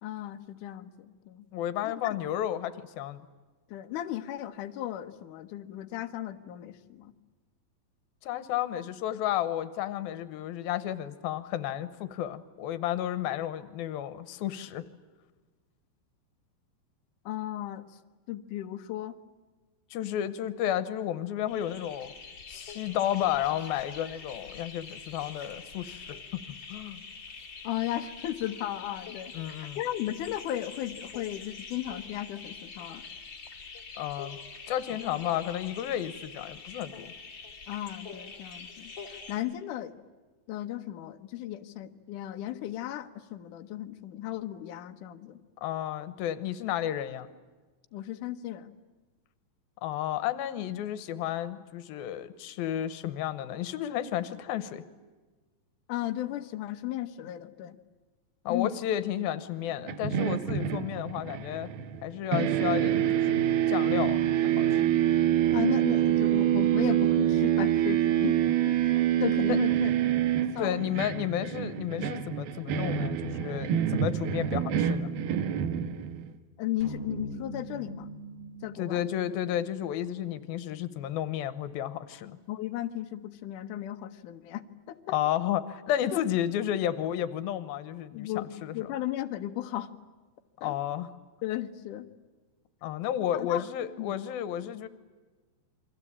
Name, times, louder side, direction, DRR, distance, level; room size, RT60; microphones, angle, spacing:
voice 1, 0.0-1.5 1.8-2.2 3.7-7.1 17.3-18.0 18.3-19.2 27.6-33.0 37.7-40.0 40.5-45.4 47.9-48.7 55.9-57.8 58.5-58.7 62.3-62.5 65.5-68.4 68.7-69.9 70.5-70.8 76.6-78.1 78.6-79.0 82.5-85.2 86.1-86.2 88.1-89.9 90.6-90.8 91.4-92.1 93.4-93.6 94.0-94.1, left 13 dB, 65° left, 6 dB, 2.5 m, -35 dB
voice 2, 1.5-3.2 8.2-14.8 19.9-22.1 22.5-26.2 26.7-27.0 29.3-29.8 34.0-34.4 34.7-37.1 45.6-47.3 49.8-54.8 58.5-61.7 62.0-64.2 64.6-64.8 69.5-69.6 70.6-75.1 78.8-82.4 85.1-88.9 90.6-91.1 92.8-94.9, left 11 dB, 90° left, 14 dB, 3.0 m, -32 dB
sound 1, 21.5-39.4, left 4 dB, 30° left, 3.9 m, -45 dB
sound 2, 59.9-62.1 62.3-76.3, right 11 dB, 80° right, 3.0 m, -26 dB
sound 3, 76.8-81.1, right 2 dB, 15° right, 0.9 m, -44 dB
29.0 x 23.5 x 8.7 m, 1.3 s
omnidirectional pair, 4.2 m